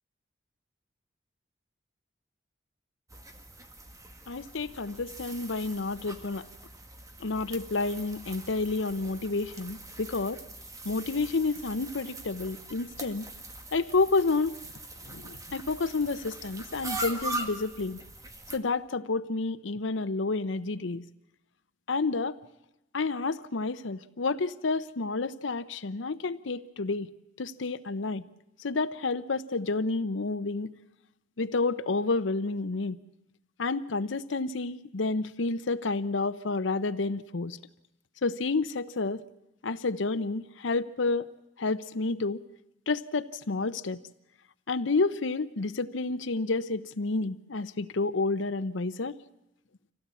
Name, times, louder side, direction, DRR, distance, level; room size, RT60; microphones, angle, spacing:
sound 1, 3.1-18.6, right 2 dB, 20° right, 1.9 m, -42 dB
voice 1, 4.3-6.4 7.2-10.4 10.8-13.2 13.7-14.5 15.1-18.0 18.5-21.0 21.9-22.4 22.9-27.1 27.4-28.2 28.6-30.7 31.4-33.0 33.6-37.6 38.2-39.2 39.6-41.3 41.6-42.4 42.9-44.0 44.7-49.2, left 3 dB, 90° left, 11 dB, 0.8 m, -30 dB
25.5 x 17.0 x 8.4 m, 0.92 s
head